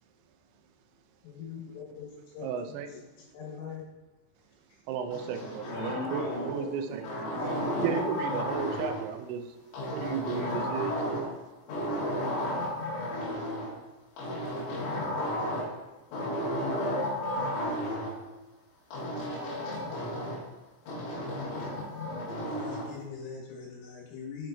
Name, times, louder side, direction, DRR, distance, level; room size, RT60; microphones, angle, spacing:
voice 1, 1.2-2.1 2.3-2.5 2.9-3.9 22.4-24.5, left 6 dB, 90° left, -3 dB, 4.4 m, -42 dB
voice 2, 2.4-2.9 4.9-5.7 6.1-7.0 7.8-9.6 9.9-11.0, right 7 dB, 85° right, 8 dB, 3.1 m, -33 dB
sound 1, 5.1-6.7 7.0-9.1 9.7-11.4 11.7-13.7 14.2-15.8 16.1-18.1 18.9-20.5 20.9-22.9, equal, 70° left, 4.1 m, -33 dB
voice 3, 5.7-8.4, equal, 55° right, -6 dB, 2.2 m, -40 dB
8.7 x 4.4 x 2.6 m, 1.1 s
omnidirectional pair, 6.0 m